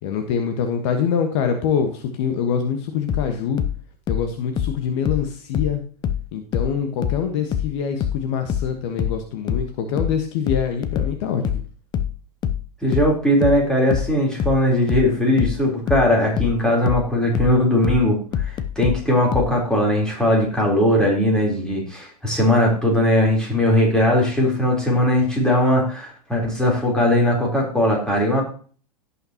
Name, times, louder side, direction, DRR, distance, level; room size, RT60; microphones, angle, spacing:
voice 1, 0.0-3.6 4.1-5.8 6.3-11.6, left 7 dB, 45° left, 6 dB, 1.4 m, -24 dB
sound 1, 3.1-6.3 6.5-19.6, left 9 dB, 20° left, 0.7 m, -25 dB
voice 2, 12.8-28.4, left 1 dB, 5° left, -2 dB, 3.7 m, -19 dB
17.0 x 5.7 x 2.9 m, 0.42 s
figure-of-eight pair, 100°, 20 cm